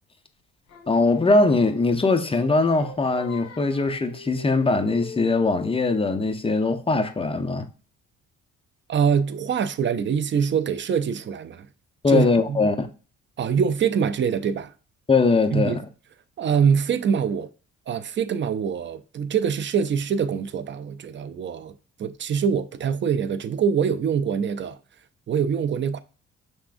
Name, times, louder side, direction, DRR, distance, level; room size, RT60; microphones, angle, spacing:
Singing, 0.7-5.9, left 2 dB, 60° left, 1.6 m, -42 dB
voice 1, 0.9-7.7 12.0-12.9 15.1-15.8, left 3 dB, 20° left, 0.7 m, -21 dB
voice 2, 8.9-11.7 12.1-12.6 13.4-14.7 15.5-15.8 16.4-17.5 17.9-21.7 22.0-24.8 25.3-26.0, right 7 dB, 40° right, 0.4 m, -24 dB
5.7 x 3.5 x 2.5 m
cardioid pair, 90°, 30 cm